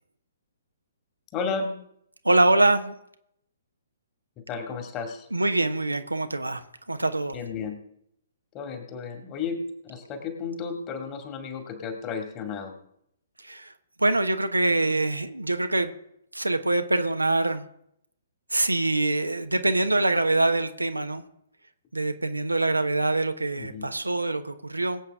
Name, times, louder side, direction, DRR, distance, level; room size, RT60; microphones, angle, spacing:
voice 1, 1.3-1.7 4.5-5.3 7.3-7.8 8.5-12.8 23.6-23.9, left 5 dB, 25° left, 4 dB, 2.2 m, -33 dB
voice 2, 2.2-2.9 5.3-6.6 6.9-7.4 13.4-13.7 14.0-15.9 16.3-17.6 18.5-21.2 21.9-25.0, right 2 dB, 80° right, 8 dB, 1.1 m, -24 dB
22.0 x 8.3 x 3.6 m, 0.73 s
figure-of-eight pair, 125°, 0 cm